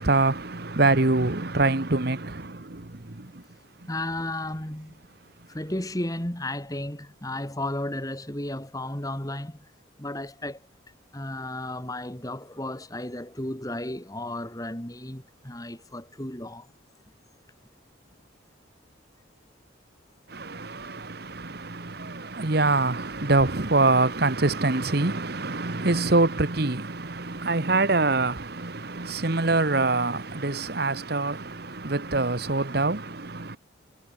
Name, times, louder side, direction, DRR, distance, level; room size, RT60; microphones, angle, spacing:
voice 1, 0.0-3.4 20.3-33.6, right 3 dB, 50° right, 1.3 m, -25 dB
voice 2, 3.9-5.0 5.5-9.7 10.0-10.6 11.1-16.7, left 1 dB, 20° left, 2.4 m, -33 dB
head